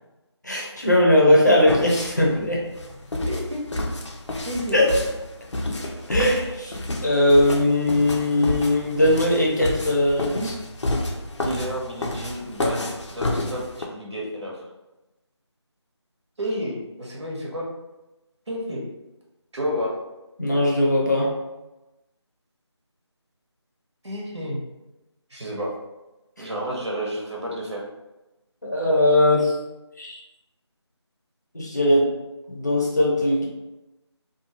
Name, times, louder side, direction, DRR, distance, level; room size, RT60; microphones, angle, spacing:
voice 1, 0.4-2.6 4.7-4.9 6.1-6.8 7.0-10.6 20.4-21.3 26.4-26.5 28.6-29.6 30.0-30.2 31.5-32.1 32.5-33.5, left 1 dB, 40° left, -4 dB, 0.6 m, -19 dB
sound 1, 1.7-13.8, left 1 dB, 80° left, 0.5 m, -30 dB
voice 2, 3.3-3.7 4.4-4.8 11.4-14.7 16.4-17.7 18.5-18.8 19.5-19.9 24.0-24.6 25.3-25.7 26.4-27.8, equal, 75° right, -3 dB, 0.9 m, -30 dB
2.5 x 2.3 x 2.9 m, 1.0 s
figure-of-eight pair, 180°, 15 cm